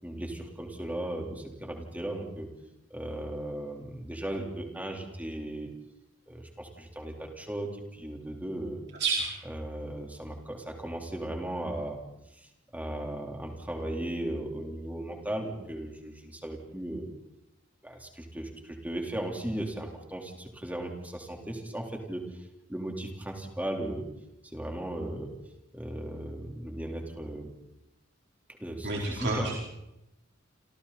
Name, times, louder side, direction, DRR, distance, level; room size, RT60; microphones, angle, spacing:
voice 1, 0.0-2.5 2.9-5.7 6.3-8.8 9.5-12.0 12.3-12.5 12.7-17.1 17.8-22.4 22.7-24.0 24.5-25.3 25.7-27.5 28.6-29.5, right 1 dB, 10° right, 1 dB, 4.1 m, -36 dB
voice 2, 28.8-29.6, right 3 dB, 60° right, -2 dB, 4.5 m, -29 dB
29.5 x 26.5 x 4.4 m, 0.88 s
head